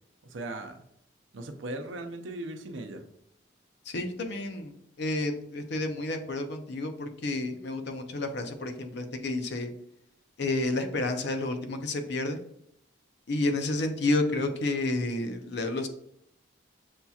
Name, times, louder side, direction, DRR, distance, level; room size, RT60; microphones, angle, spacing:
voice 1, 0.2-0.7 1.3-3.0, right 2 dB, 70° right, 6 dB, 0.6 m, -38 dB
voice 2, 3.9-9.7 10.4-12.4 13.3-15.9, left 2 dB, 60° left, 6 dB, 0.6 m, -30 dB
7.0 x 2.8 x 2.3 m, 0.72 s
head